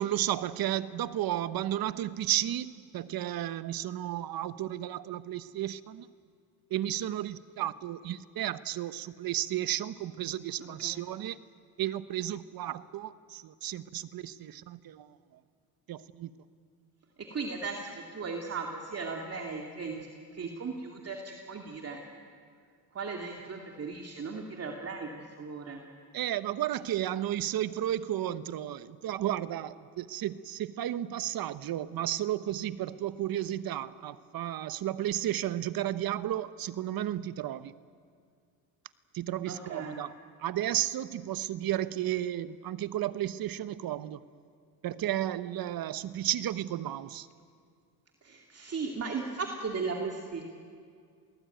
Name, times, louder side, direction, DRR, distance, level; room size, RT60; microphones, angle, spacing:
voice 1, 0.0-6.1 6.7-11.4 11.8-15.4 15.9-16.3 26.1-37.7 39.1-40.1 40.4-44.2 44.8-47.3, right 12 dB, 60° right, 14 dB, 1.1 m, -33 dB
voice 2, 10.6-10.9 17.2-20.1 20.3-22.0 22.9-25.1 25.4-25.8 39.5-40.0 48.2-50.4, right 4 dB, 40° right, 2 dB, 2.5 m, -37 dB
27.5 x 19.0 x 9.2 m, 2.2 s
cardioid pair, 95°, 39 cm